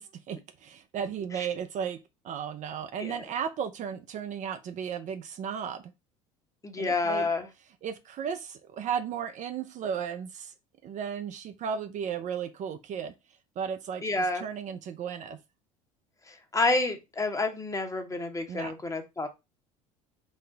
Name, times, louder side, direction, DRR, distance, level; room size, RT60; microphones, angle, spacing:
voice 1, 0.1-5.9 6.8-7.3 7.8-10.5 10.8-13.1 13.6-15.4 18.5-18.7, right 7 dB, 45° right, 0.5 m, -35 dB
voice 2, 6.6-7.5 14.0-14.5 16.3-19.3, left 3 dB, 20° left, 0.9 m, -29 dB
4.1 x 2.1 x 3.8 m
hypercardioid pair, 70°, 18 cm